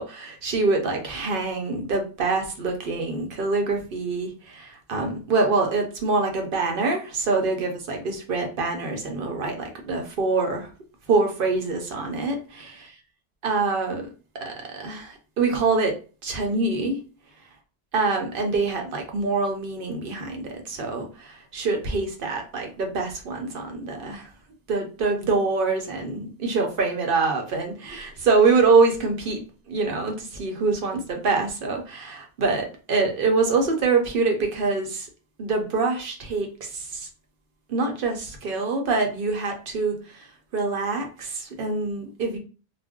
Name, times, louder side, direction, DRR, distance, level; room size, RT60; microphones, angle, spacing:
voice 1, 0.0-10.7 11.1-12.7 13.4-14.1 14.5-15.9 16.2-17.0 17.9-24.3 24.7-35.1 35.4-37.1 37.7-42.4, right 3 dB, 60° right, 3 dB, 0.8 m, -25 dB
2.4 x 2.0 x 3.5 m, 0.36 s
omnidirectional pair, 1.1 m